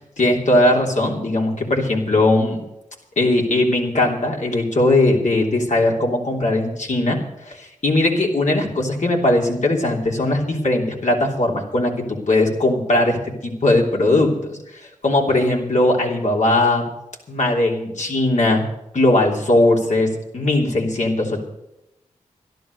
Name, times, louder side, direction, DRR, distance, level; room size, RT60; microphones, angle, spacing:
voice 1, 0.0-2.6 3.2-7.2 7.4-16.9 17.3-18.6 18.9-20.1 20.3-21.4, left 2 dB, 65° left, 0 dB, 3.2 m, -19 dB
12.0 x 11.5 x 6.6 m, 0.86 s
cardioid pair, 40°, 13 cm